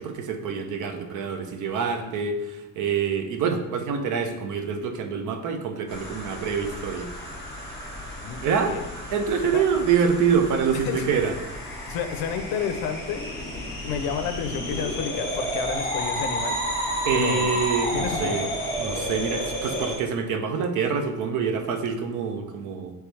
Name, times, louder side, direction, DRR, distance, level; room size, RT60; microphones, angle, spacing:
voice 1, 0.0-7.1 8.4-8.7 9.1-11.3 17.0-18.5 18.8-22.9, right 6 dB, 55° right, 6 dB, 0.5 m, -26 dB
sound 1, 5.9-20.0, equal, 5° left, 1.3 m, -31 dB
voice 2, 10.7-11.3 11.9-13.3 13.8-16.9 17.1-17.6 17.9-18.5, left 7 dB, 75° left, 8 dB, 0.5 m, -31 dB
4.8 x 3.2 x 3.1 m, 1.0 s
cardioid pair, 180°, 36 cm